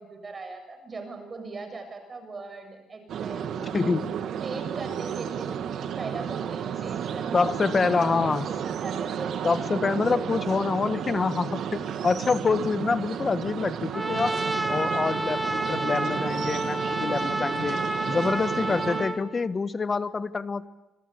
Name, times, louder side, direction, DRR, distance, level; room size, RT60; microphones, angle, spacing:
voice 1, 0.0-3.7 4.4-10.1 18.9-19.1, right 3 dB, 30° right, 6 dB, 7.4 m, -40 dB
sound 1, 3.1-19.1, right 8 dB, 65° right, 2.5 m, -32 dB
voice 2, 3.7-4.1 7.3-8.5 9.4-14.4 14.7-17.8 18.1-20.7, left 4 dB, 30° left, 13 dB, 1.4 m, -26 dB
Trumpet, 13.9-19.2, right 1 dB, 10° right, 2.5 m, -29 dB
27.0 x 26.5 x 8.4 m, 0.99 s
cardioid pair, 105°, 0 cm